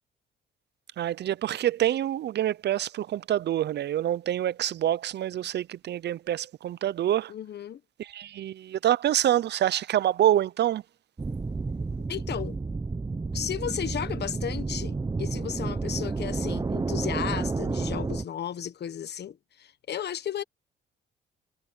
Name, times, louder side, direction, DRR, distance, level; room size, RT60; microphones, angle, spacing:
voice 1, 1.0-7.3 8.0-10.8, right 12 dB, 60° right, 0.6 m, -26 dB
voice 2, 7.3-7.8 12.1-12.6 13.3-20.4, left 9 dB, 55° left, 1.3 m, -34 dB
sound 1, 11.2-18.2, right 3 dB, 20° right, 1.0 m, -31 dB
cardioid pair, 90°, 20 cm